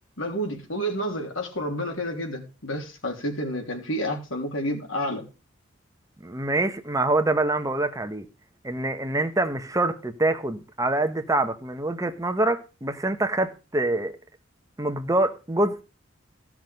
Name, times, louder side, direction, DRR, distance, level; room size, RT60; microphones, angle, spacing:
voice 1, 0.2-5.2, equal, 90° left, 3.2 m, -30 dB
voice 2, 6.2-8.3 8.6-14.1 14.8-15.8, right 2 dB, 15° right, 1.0 m, -25 dB
15.5 x 6.2 x 5.3 m
head